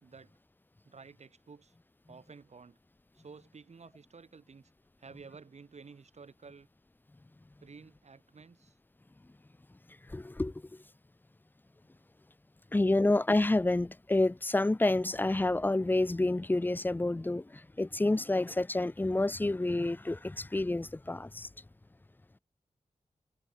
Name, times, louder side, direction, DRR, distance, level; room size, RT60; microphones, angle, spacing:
voice 1, 0.0-0.4 0.8-1.7 2.1-2.8 3.1-4.7 5.0-6.7 7.6-8.8 12.6-13.0, right 5 dB, 65° right, 2.0 m, -52 dB
voice 2, 10.1-10.8 12.7-21.5, left 2 dB, 15° left, 0.5 m, -29 dB
cardioid pair, 50°, 12 cm